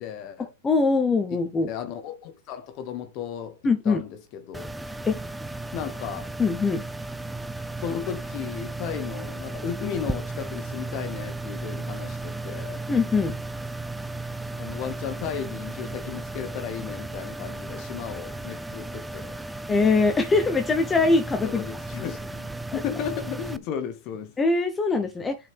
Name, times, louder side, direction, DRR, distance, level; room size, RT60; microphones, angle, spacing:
voice 1, 0.0-0.5 1.3-1.4 1.7-3.6 3.8-4.7 5.7-6.3 7.8-12.8 14.5-19.4 21.4-24.3, left 8 dB, 45° left, 1.0 m, -35 dB
voice 2, 0.6-1.7 3.6-4.0 5.0-5.2 6.4-6.8 12.9-13.3 19.7-21.6 22.0-22.1 22.7-22.8 24.4-25.4, left 3 dB, 15° left, 0.9 m, -22 dB
sound 1, 4.5-23.6, right 2 dB, 5° right, 0.5 m, -35 dB
9.1 x 5.0 x 3.5 m
hypercardioid pair, 110°, 0 cm